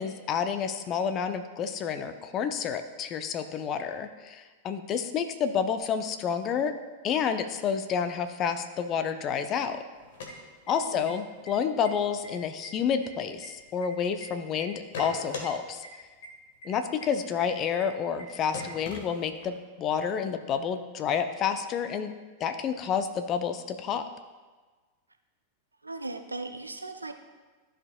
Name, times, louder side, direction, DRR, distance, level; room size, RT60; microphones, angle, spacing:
voice 1, 0.0-6.7 7.0-9.8 10.7-15.8 16.6-22.1 22.4-24.1, left 7 dB, 30° left, 9 dB, 0.5 m, -29 dB
sound 1, 10.0-11.1 11.4-11.5 11.8-12.3 12.6-14.2 14.6-15.5 15.8-15.9 16.2-16.3 16.6-16.7 17.0-17.1 17.4-17.5 17.8-17.9 18.2-18.3 18.5-19.6, left 3 dB, 55° left, 1.4 m, -40 dB
voice 2, 25.8-27.1, right 2 dB, 80° right, 6 dB, 0.5 m, -38 dB
13.5 x 5.0 x 2.3 m, 1.3 s
figure-of-eight pair, 90°, 0 cm